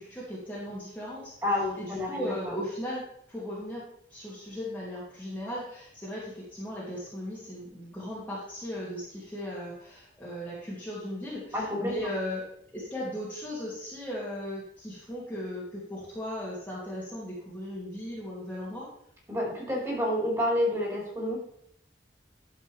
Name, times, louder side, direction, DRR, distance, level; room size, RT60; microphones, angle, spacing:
voice 1, 0.0-1.3 1.8-12.5 12.7-18.9, equal, 10° left, -8 dB, 2.5 m, -37 dB
voice 2, 1.4-2.5 11.5-12.1 19.3-21.4, left 1 dB, 20° right, -5 dB, 4.4 m, -29 dB
11.5 x 7.5 x 3.4 m, 0.71 s
head